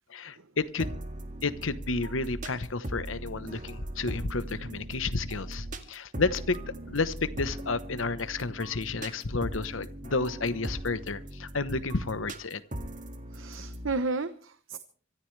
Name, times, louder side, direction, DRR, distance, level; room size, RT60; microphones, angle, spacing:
voice 1, 0.1-1.0 1.4-6.6 6.9-12.6, left 3 dB, 70° left, 14 dB, 1.0 m, -31 dB
sound 1, 0.8-13.9, right 1 dB, 40° right, 1.9 m, -39 dB
voice 2, 13.3-14.8, right 3 dB, 70° right, 11 dB, 0.9 m, -33 dB
25.5 x 14.0 x 3.3 m, 0.41 s
head